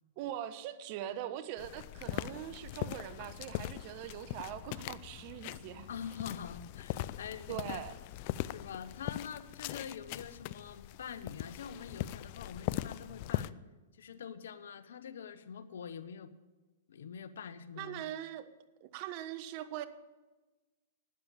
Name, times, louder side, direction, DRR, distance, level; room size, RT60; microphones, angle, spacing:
voice 1, 0.2-5.9 7.5-7.9 17.8-18.5 18.8-19.9, right 11 dB, 45° right, 12 dB, 1.1 m, -42 dB
sound 1, 1.6-13.5, left 15 dB, 50° left, 0.5 m, -41 dB
voice 2, 5.9-7.8 8.4-13.6 13.9-16.3 16.9-18.0, left 7 dB, 75° left, 14 dB, 1.0 m, -45 dB
12.0 x 10.0 x 8.4 m, 1.2 s
hypercardioid pair, 125°, 0 cm